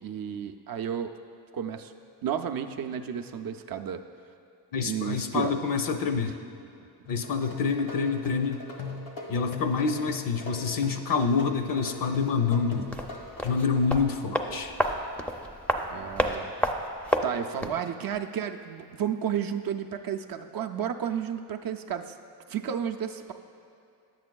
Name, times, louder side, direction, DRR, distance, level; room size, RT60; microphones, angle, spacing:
voice 1, 0.0-1.1 1.5-1.9 2.2-4.0 4.8-5.5 15.9-16.5 17.2-22.1 22.5-23.3, right 8 dB, 55° right, 6 dB, 0.5 m, -32 dB
voice 2, 4.7-6.3 7.1-8.6 9.3-12.9 13.4-14.7, left 5 dB, 50° left, 6 dB, 0.6 m, -27 dB
sound 1, 7.1-14.0, left 4 dB, 90° left, 1.4 m, -39 dB
sound 2, 12.9-17.9 18.1-18.2, equal, 5° left, 0.4 m, -30 dB
10.0 x 7.7 x 2.3 m, 2.6 s
cardioid pair, 70°, 42 cm